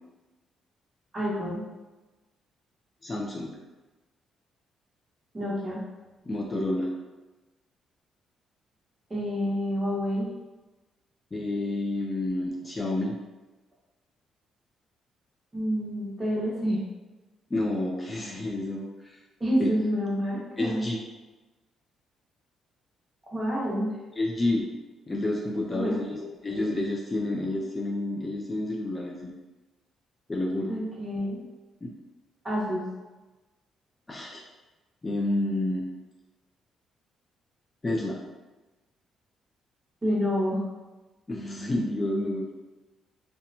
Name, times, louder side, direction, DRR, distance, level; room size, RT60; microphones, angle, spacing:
voice 1, 1.1-1.6 5.3-5.8 9.1-10.3 15.5-16.8 19.4-20.9 23.3-24.0 25.7-26.2 26.5-26.7 30.7-31.4 32.4-32.8 40.0-40.6, equal, 25° right, -6 dB, 1.1 m, -28 dB
voice 2, 3.0-3.6 6.3-6.9 11.3-13.2 17.5-19.2 19.6-19.7 20.6-21.0 24.2-24.7 25.1-26.2 26.4-29.3 30.3-30.8 31.8-31.9 34.1-34.4 35.0-35.9 37.8-38.2 41.3-42.5, left 1 dB, 25° left, -2 dB, 0.4 m, -29 dB
2.8 x 2.1 x 2.6 m, 1.2 s
cardioid pair, 90°, 0 cm